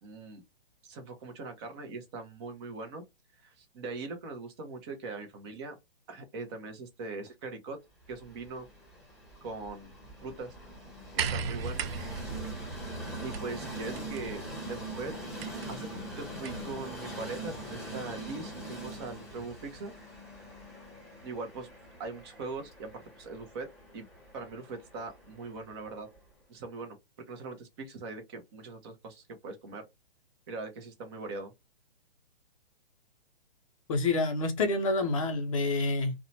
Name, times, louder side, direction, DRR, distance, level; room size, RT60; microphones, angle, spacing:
voice 1, 0.0-0.4 0.8-3.0 3.4-5.7 6.1-7.8 8.1-8.7 9.4-9.9 10.2-10.6 11.1-11.9 13.2-15.1 15.7-19.9 21.2-21.7 22.0-23.7 23.9-24.0 24.3-26.1 26.5-27.0 27.3-29.8 30.5-31.5, right 3 dB, 25° right, 0.6 m, -41 dB
Train, 8.1-26.2, right 1 dB, ahead, 1.2 m, -43 dB
sound 1, 11.2-16.8 17.9-18.0, right 6 dB, 75° right, 0.5 m, -38 dB
voice 2, 33.9-36.1, left 3 dB, 35° left, 0.5 m, -28 dB
2.7 x 2.1 x 2.7 m
hypercardioid pair, 135°, 31 cm